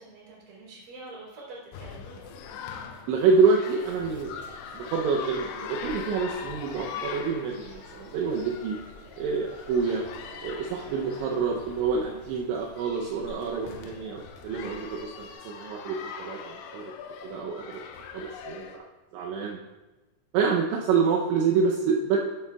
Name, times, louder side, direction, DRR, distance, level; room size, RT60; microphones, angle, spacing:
voice 1, 0.0-2.3 6.2-6.6 11.3-11.6, right 2 dB, 50° right, -4 dB, 4.8 m, -46 dB
sound 1, 1.7-18.8, left 7 dB, 80° left, 2.5 m, -42 dB
voice 2, 3.1-4.3 4.7-8.8 9.2-10.1 10.4-16.9 17.2-17.6 18.1-18.8 19.1-19.6 20.3-22.2, right 5 dB, 85° right, -1 dB, 3.0 m, -27 dB
sound 2, 3.8-15.3, left 3 dB, 60° left, 3.7 m, -49 dB
12.0 x 8.7 x 2.3 m, 1.1 s
omnidirectional pair, 5.3 m